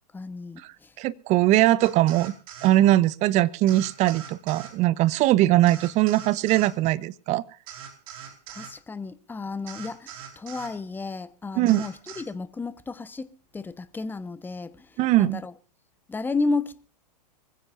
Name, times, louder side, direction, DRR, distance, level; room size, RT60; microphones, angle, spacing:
voice 1, 0.1-0.9 8.2-14.9 15.2-15.5 16.1-16.9, left 3 dB, 10° left, 1.1 m, -32 dB
voice 2, 1.0-2.3 2.6-7.4 11.6-11.8 15.0-15.4, right 15 dB, 35° right, 1.0 m, -21 dB
sound 1, 1.8-2.8 3.7-4.7 5.7-6.7 7.7-8.7 9.7-10.8 11.7-12.2, right 8 dB, 55° right, 4.5 m, -42 dB
24.5 x 15.5 x 2.6 m
hypercardioid pair, 110°, 21 cm